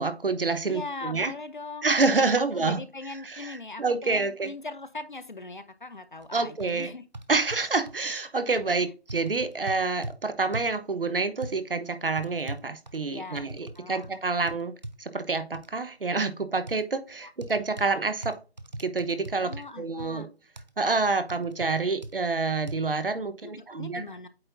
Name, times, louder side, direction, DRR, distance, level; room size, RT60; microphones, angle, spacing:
voice 1, 0.0-1.3 1.8-2.8 3.2-4.5 6.3-6.9 7.3-14.7 15.0-18.4 18.8-20.3 20.8-24.0, right 3 dB, 60° right, 10 dB, 1.0 m, -28 dB
voice 2, 0.7-1.9 2.5-7.0 13.1-14.1 17.2-17.3 19.4-20.3 23.4-24.3, left 3 dB, 50° left, 12 dB, 0.7 m, -40 dB
sound 1, 6.2-6.3 6.6-6.7 7.1-8.0 8.6-8.7 9.1-10.2 10.5-10.8 11.4-11.6 12.2-13.8 14.0-14.2 14.5-15.0 15.5-15.7 16.7-16.8 17.4-17.9 18.2-19.6 20.0-20.1 20.6-20.7 21.3-21.7 22.0-22.1 22.7-22.8, right 2 dB, 45° right, 0.6 m, -39 dB
8.6 x 4.3 x 2.6 m, 0.32 s
figure-of-eight pair, 180°, 32 cm